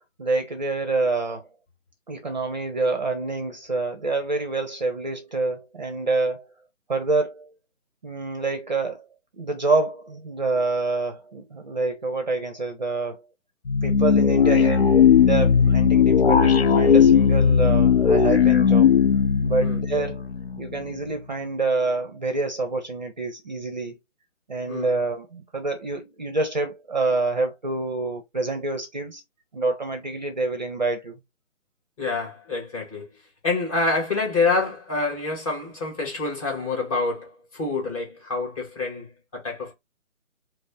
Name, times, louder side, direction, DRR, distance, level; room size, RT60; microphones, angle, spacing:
voice 1, 0.2-1.5 2.1-6.5 6.9-7.5 8.0-9.1 9.4-13.2 13.8-14.9 15.2-18.9 19.4-20.3 20.6-24.0 24.5-29.2 29.5-31.2, right 3 dB, 35° right, 0.7 m, -27 dB
sound 1, 13.7-20.8, left 7 dB, 50° left, 0.4 m, -17 dB
voice 2, 32.0-33.1 33.4-39.7, left 3 dB, 25° left, 2.1 m, -27 dB
5.1 x 2.0 x 3.7 m
figure-of-eight pair, 145°, 39 cm